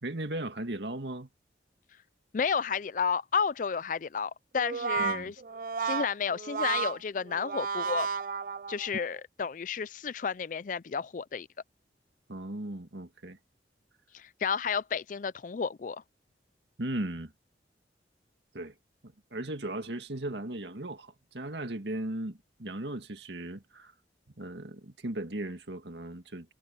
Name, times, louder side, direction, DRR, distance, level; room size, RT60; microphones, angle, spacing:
voice 1, 0.0-1.3 5.0-5.3 12.3-13.4 16.8-17.3 18.5-18.7 19.0-23.9 24.4-26.5, right 1 dB, 75° right, 2.1 m, -37 dB
voice 2, 2.3-5.3 5.8-8.1 8.7-11.5 14.1-16.0, left 6 dB, 45° left, 0.4 m, -31 dB
Brass instrument, 4.5-9.1, right 6 dB, 50° right, 0.4 m, -33 dB
head